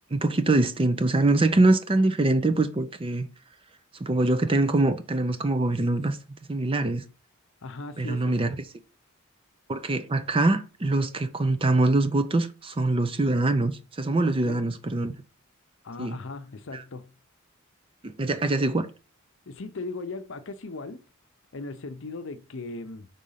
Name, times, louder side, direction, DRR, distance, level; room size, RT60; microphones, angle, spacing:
voice 1, 0.1-3.3 4.0-6.2 6.5-7.0 8.0-8.6 9.7-15.1 16.0-16.2 16.7-16.8 18.0-18.9, right 2 dB, 25° right, 0.5 m, -24 dB
voice 2, 7.6-8.5 14.4-14.6 15.8-17.1 19.5-21.0 21.5-23.1, left 3 dB, 60° left, 0.7 m, -38 dB
5.2 x 3.7 x 5.6 m
head